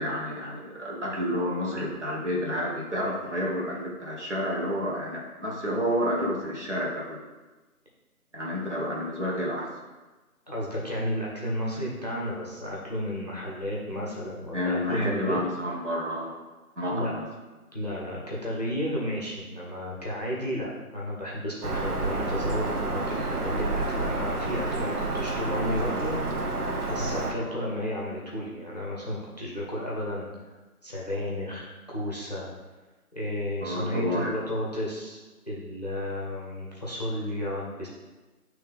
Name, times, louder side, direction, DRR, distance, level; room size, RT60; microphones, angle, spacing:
voice 1, 0.0-7.2 8.3-9.7 14.5-16.3 16.8-17.3 27.4-27.5 33.6-34.4, equal, 50° right, -4 dB, 1.4 m, -30 dB
voice 2, 10.5-15.4 16.9-17.1 17.7-26.6 26.9-30.3 30.8-32.5 33.1-35.2 35.5-37.9, equal, 25° left, -6 dB, 0.8 m, -32 dB
Bird vocalization bird call bird song, 21.6-27.3, right 2 dB, 80° right, 1.0 m, -29 dB
8.5 x 3.2 x 3.6 m, 1.2 s
figure-of-eight pair, 170°, 45 cm